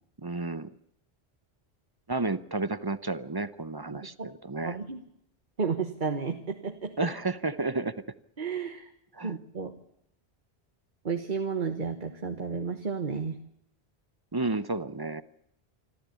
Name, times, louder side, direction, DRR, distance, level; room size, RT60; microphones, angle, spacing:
voice 1, 0.2-0.7 2.1-4.8 7.0-8.0 9.1-9.3 14.3-15.2, right 3 dB, 25° right, 15 dB, 0.8 m, -31 dB
voice 2, 3.9-4.3 4.6-5.0 5.6-7.1 8.4-8.9 9.2-9.7 11.0-13.4, right 5 dB, 45° right, 6 dB, 1.5 m, -32 dB
26.0 x 14.0 x 8.4 m, 0.76 s
omnidirectional pair, 1.1 m